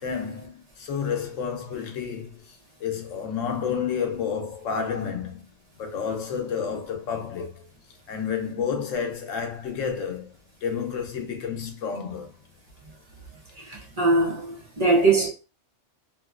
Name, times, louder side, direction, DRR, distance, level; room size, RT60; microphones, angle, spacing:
voice 1, 0.0-5.4 5.8-7.7 8.1-10.3 10.6-12.3, left 7 dB, 90° left, 1.0 m, -30 dB
voice 2, 13.6-15.3, right 3 dB, 35° right, 0.8 m, -22 dB
2.9 x 2.6 x 2.3 m
omnidirectional pair, 1.3 m